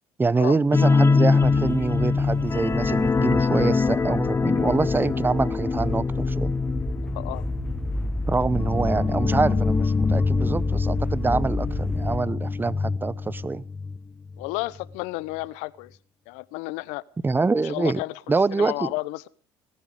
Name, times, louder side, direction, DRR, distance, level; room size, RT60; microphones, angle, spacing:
voice 1, 0.2-6.5 8.3-13.6 17.2-18.0 18.3-18.9, right 3 dB, 15° right, 0.8 m, -25 dB
sound 1, 0.7-14.0 14.3-14.5 14.8-14.9, left 4 dB, 20° left, 0.9 m, -24 dB
sound 2, 1.4-12.2, left 1 dB, 5° left, 1.3 m, -31 dB
voice 2, 7.1-7.4 14.4-16.0 16.3-17.0 17.6-19.3, left 21 dB, 75° left, 0.9 m, -32 dB
19.0 x 14.5 x 5.0 m
supercardioid pair, 85°, 12 cm